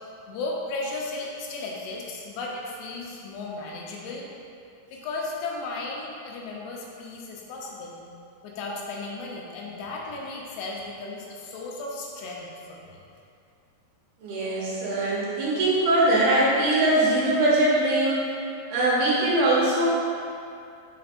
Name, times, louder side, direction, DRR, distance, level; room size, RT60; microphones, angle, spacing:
voice 1, 0.3-4.3 4.9-8.0 8.4-13.0, left 3 dB, 80° left, -2 dB, 2.9 m, -35 dB
voice 2, 14.2-18.3 18.7-19.9, right 1 dB, 75° right, -7 dB, 2.9 m, -22 dB
6.9 x 3.2 x 5.1 m, 2.5 s
omnidirectional pair, 4.8 m